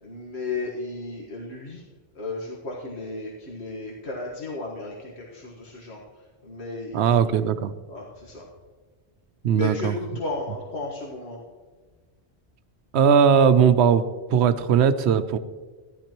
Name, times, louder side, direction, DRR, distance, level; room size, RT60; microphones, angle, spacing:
voice 1, 0.0-1.8 2.2-6.0 6.4-7.4 7.9-8.4 9.5-11.4, left 3 dB, 85° left, -3 dB, 1.8 m, -34 dB
voice 2, 6.9-7.7 9.4-9.9 12.9-14.0 14.3-15.4, right 7 dB, 85° right, 11 dB, 0.9 m, -19 dB
14.5 x 11.0 x 3.0 m, 1.4 s
omnidirectional pair, 1.1 m